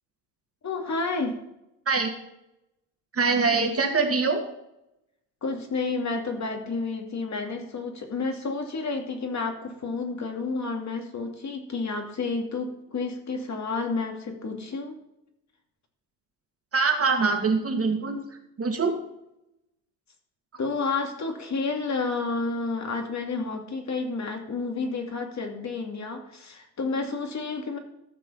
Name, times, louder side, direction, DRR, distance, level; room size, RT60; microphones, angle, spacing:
voice 1, 0.6-1.4 5.4-15.0 20.6-27.8, left 4 dB, 35° left, 4 dB, 2.6 m, -30 dB
voice 2, 3.1-4.4 16.7-18.2 18.6-18.9, right 4 dB, 30° right, 4 dB, 2.7 m, -23 dB
14.5 x 6.1 x 5.7 m, 0.85 s
hypercardioid pair, 70°, 49 cm